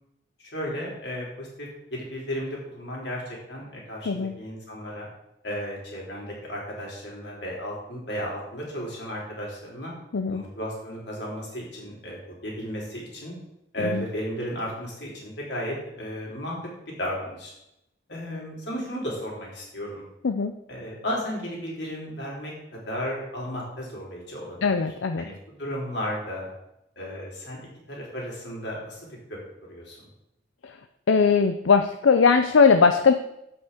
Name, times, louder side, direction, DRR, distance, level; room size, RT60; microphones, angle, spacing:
voice 1, 0.4-5.1 5.4-9.9 10.3-12.2 12.4-13.3 13.7-17.5 18.1-20.1 20.7-24.8 25.2-25.3 25.6-26.5 27.0-29.4 29.7-30.1, equal, 60° left, -3 dB, 3.5 m, -34 dB
voice 2, 10.1-10.4 13.8-14.1 20.2-20.5 24.6-25.3 30.6-30.8 31.1-33.1, left 5 dB, 80° left, 8 dB, 0.5 m, -20 dB
7.9 x 5.9 x 6.7 m, 0.84 s
head